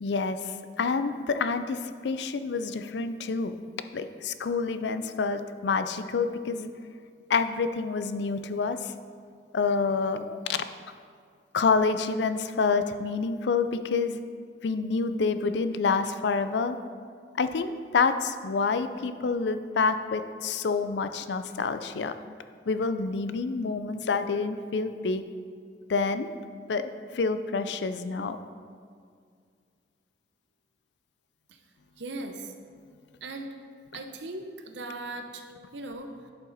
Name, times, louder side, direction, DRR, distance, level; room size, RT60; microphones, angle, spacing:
voice 1, 0.0-3.6 3.9-6.7 7.3-8.9 9.5-10.7 11.5-14.2 14.6-16.8 17.3-22.1 22.7-25.2 25.9-26.3 26.7-28.4, left 4 dB, 70° left, 10 dB, 0.4 m, -28 dB
voice 2, 32.0-32.5 33.2-33.5 33.9-35.5 35.7-36.3, right 2 dB, 80° right, 6 dB, 0.8 m, -38 dB
11.0 x 5.5 x 4.0 m, 2.2 s
head